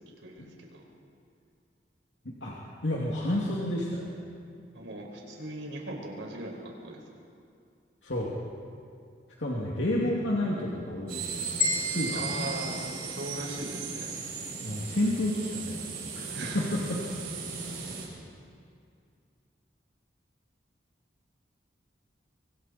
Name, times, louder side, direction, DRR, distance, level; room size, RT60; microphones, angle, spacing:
voice 1, 0.2-0.8 4.7-7.0 12.1-14.1 16.3-16.6, right 1 dB, 90° right, 0 dB, 4.8 m, -39 dB
voice 2, 2.2-2.6 2.8-4.1 8.0-8.3 9.4-12.4 14.6-15.8 16.1-17.0, left 1 dB, 85° left, -4 dB, 2.6 m, -30 dB
sound 1, 11.1-18.1, right 5 dB, 55° right, 7.3 m, -37 dB
sound 2, 11.6-13.8, left 3 dB, 35° left, 4.6 m, -33 dB
25.0 x 25.0 x 4.4 m, 2.3 s
head